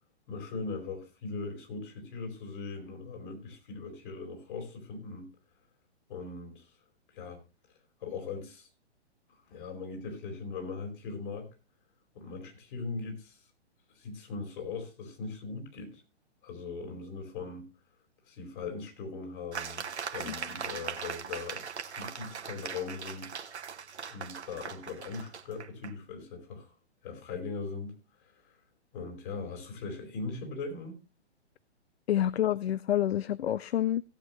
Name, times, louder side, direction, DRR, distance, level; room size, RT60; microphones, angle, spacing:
voice 1, 0.3-5.3 6.1-6.7 7.1-7.4 8.0-8.7 9.5-11.5 12.1-13.4 13.9-16.0 16.4-17.7 18.3-21.6 22.0-23.3 24.1-26.7 27.0-28.0 28.4-28.5 28.9-31.0, left 4 dB, 50° left, 4.6 m, -40 dB
sound 1, 19.5-25.9, right 6 dB, 75° right, 1.3 m, -40 dB
voice 2, 32.1-34.0, left 11 dB, 65° left, 0.5 m, -28 dB
17.5 x 8.0 x 3.1 m
figure-of-eight pair, 125°, 34 cm